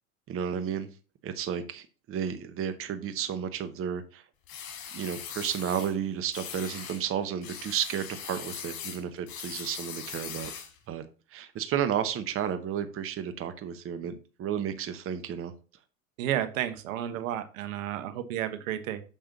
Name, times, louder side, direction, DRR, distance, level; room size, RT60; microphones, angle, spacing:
voice 1, 0.3-0.9 1.2-4.2 4.9-10.5 10.9-11.0 11.3-14.1 14.4-15.5, right 9 dB, 30° right, 10 dB, 0.9 m, -32 dB
sound 1, 4.5-5.9 6.3-7.0 7.4-10.8, left 8 dB, 55° left, 3.0 m, -40 dB
voice 2, 16.2-19.0, right 11 dB, 65° right, 10 dB, 1.2 m, -32 dB
6.8 x 5.5 x 4.0 m, 0.35 s
hypercardioid pair, 90°, 43 cm